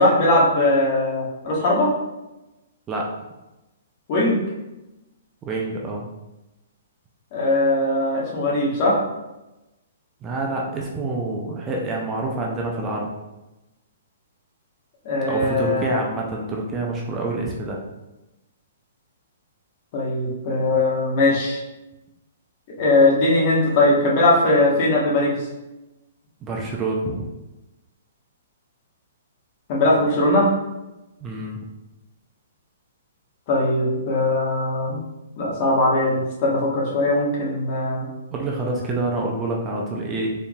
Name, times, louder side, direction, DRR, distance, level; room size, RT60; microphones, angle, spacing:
voice 1, 0.0-1.9 4.1-4.4 7.3-9.0 15.0-16.0 19.9-21.6 22.8-25.4 29.7-30.5 33.5-35.0 35.4-38.1, left 2 dB, 45° left, -4 dB, 1.3 m, -20 dB
voice 2, 5.4-6.0 10.2-13.1 15.2-17.8 26.4-27.3 31.2-31.6 38.3-40.3, right 2 dB, 20° right, -1 dB, 0.5 m, -27 dB
4.2 x 3.5 x 2.4 m, 1.0 s
hypercardioid pair, 140°, 0 cm